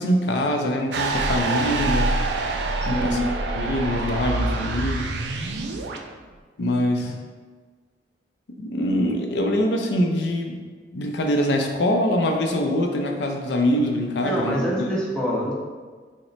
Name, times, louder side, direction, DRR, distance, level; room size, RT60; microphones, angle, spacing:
voice 1, 0.0-2.2 2.8-3.2 3.5-5.1 6.6-7.1 8.6-10.6 10.9-15.0, left 1 dB, 70° left, 2 dB, 0.4 m, -24 dB
sound 1, 0.9-6.0, right 3 dB, 65° right, 0.3 m, -26 dB
voice 2, 2.8-3.3 7.0-7.1 14.2-15.5, equal, 5° left, -6 dB, 0.6 m, -26 dB
3.0 x 2.1 x 3.9 m, 1.5 s
head